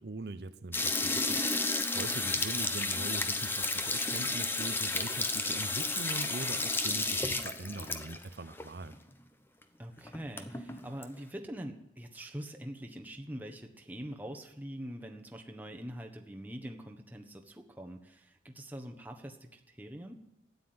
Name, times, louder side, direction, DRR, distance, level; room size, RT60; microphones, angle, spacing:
voice 1, 0.0-9.0, right 2 dB, 65° right, 11 dB, 0.7 m, -42 dB
sound 1, 0.7-8.2 8.6-8.7 8.9-9.0 9.6-9.7 10.0-11.0, left 3 dB, 10° left, 0.9 m, -32 dB
voice 2, 9.8-20.1, equal, 10° right, 3 dB, 1.3 m, -44 dB
13.0 x 9.7 x 9.7 m, 0.82 s
head